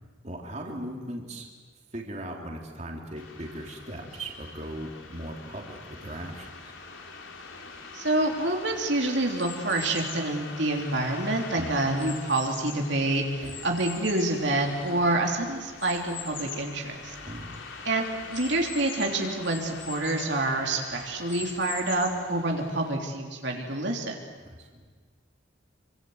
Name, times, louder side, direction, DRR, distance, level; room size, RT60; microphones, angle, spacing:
voice 1, 0.2-1.5 1.9-6.8 11.6-11.8 13.4-13.6 17.2-17.5 24.4-24.9, right 1 dB, 35° right, 0 dB, 3.5 m, -38 dB
nyc burlcoatbroad ambiance, 3.1-22.9, left 4 dB, 90° left, 4.0 m, -45 dB
voice 2, 7.9-17.1 17.8-18.0 18.3-24.1, right 2 dB, 65° right, 1 dB, 3.3 m, -27 dB
sound 1, 9.4-10.3 11.0-13.0 13.4-15.1 15.8-16.7 17.2-17.3 17.5-17.6 18.3-20.4 21.0-22.3, left 8 dB, 70° left, 3.6 m, -42 dB
27.0 x 26.0 x 8.0 m, 1.5 s
head